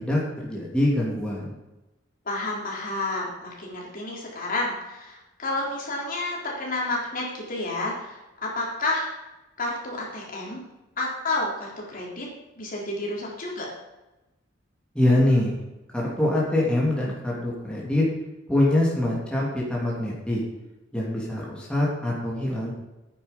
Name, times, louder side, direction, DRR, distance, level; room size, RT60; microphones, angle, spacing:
voice 1, 0.0-1.5 14.9-15.6 15.9-18.1 18.5-20.4 20.9-22.7, left 1 dB, 5° left, -5 dB, 2.9 m, -24 dB
voice 2, 2.3-9.1 9.6-10.6 11.0-12.3 12.6-13.7, left 2 dB, 45° left, -3 dB, 3.8 m, -30 dB
12.0 x 9.6 x 5.4 m, 1.0 s
head